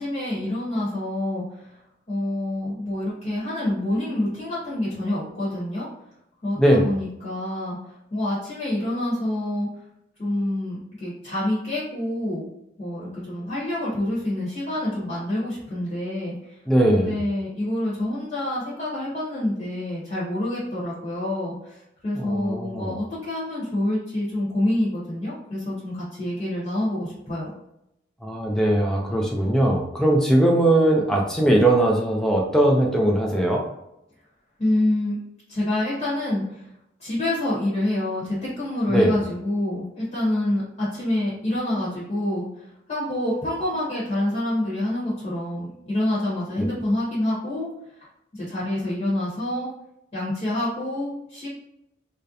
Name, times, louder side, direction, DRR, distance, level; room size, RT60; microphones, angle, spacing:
voice 1, 0.0-1.7 2.1-5.9 6.4-7.8 8.1-9.7 10.2-12.5 12.8-16.5 16.9-21.8 22.0-27.5 34.6-35.2 35.5-36.6 37.0-42.5 42.9-47.7 48.3-49.7 50.1-51.5, left 1 dB, 35° left, -8 dB, 0.9 m, -27 dB
voice 2, 6.6-6.9 16.7-17.2 22.1-23.0 28.2-33.6 38.9-39.1 46.6-46.7, right 1 dB, 5° left, -1 dB, 0.3 m, -20 dB
2.4 x 2.0 x 2.7 m, 0.83 s
head